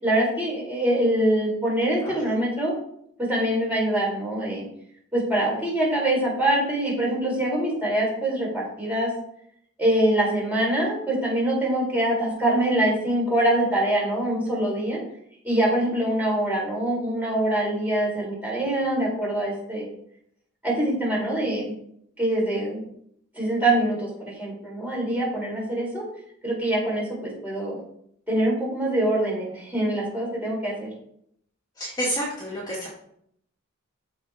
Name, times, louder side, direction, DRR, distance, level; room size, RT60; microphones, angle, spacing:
voice 1, 0.0-2.7 3.2-4.6 5.1-9.1 9.8-15.0 15.4-19.9 20.6-21.7 22.2-22.8 23.3-26.0 26.4-27.8 28.3-30.9, right 1 dB, 10° right, -5 dB, 4.1 m, -24 dB
voice 2, 31.8-32.9, equal, 20° left, -6 dB, 2.3 m, -29 dB
14.0 x 5.3 x 3.6 m, 0.69 s
head